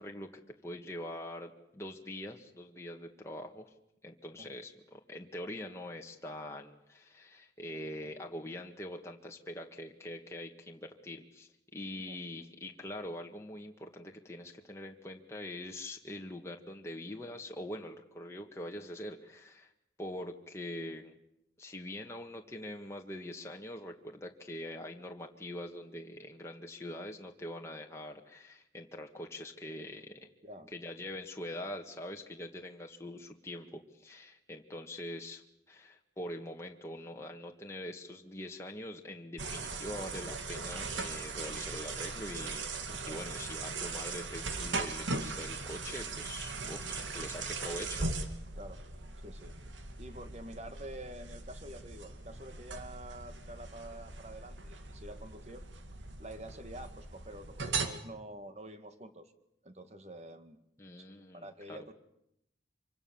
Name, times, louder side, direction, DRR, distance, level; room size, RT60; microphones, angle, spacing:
voice 1, 0.0-3.7 4.0-19.7 20.0-21.1 21.6-30.3 30.7-48.1 60.8-61.9, left 1 dB, 15° left, 1 dB, 1.8 m, -44 dB
sound 1, 39.4-57.9, right 4 dB, 85° right, 2.5 m, -39 dB
voice 2, 42.9-43.4 48.6-48.8 49.2-49.6 50.0-55.6 56.2-59.3 59.6-60.6 61.3-61.9, right 1 dB, 35° right, 8 dB, 2.2 m, -47 dB
26.0 x 25.0 x 7.3 m, 0.79 s
head